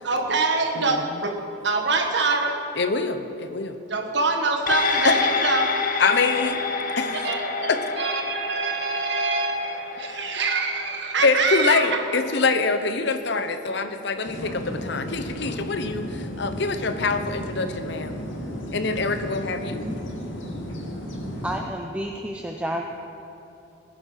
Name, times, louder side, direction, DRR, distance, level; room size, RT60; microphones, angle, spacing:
voice 1, 0.0-1.3 1.6-2.6 3.9-5.7 6.3-6.4 7.1-12.0, right 3 dB, 60° right, 3 dB, 1.6 m, -25 dB
voice 2, 2.8-3.8 5.0-5.2 6.0-6.6 7.0-7.2 7.7-7.8 11.2-18.1 18.7-19.9, left 4 dB, 60° left, 9 dB, 0.9 m, -24 dB
sound 1, 4.7-13.3 13.7-13.8, left 4 dB, 45° left, 1.1 m, -29 dB
sound 2, 14.2-21.6, equal, 80° left, 2.3 m, -34 dB
voice 3, 21.4-22.8, right 1 dB, 5° right, 2 dB, 0.6 m, -30 dB
19.0 x 10.0 x 5.7 m, 3.0 s
head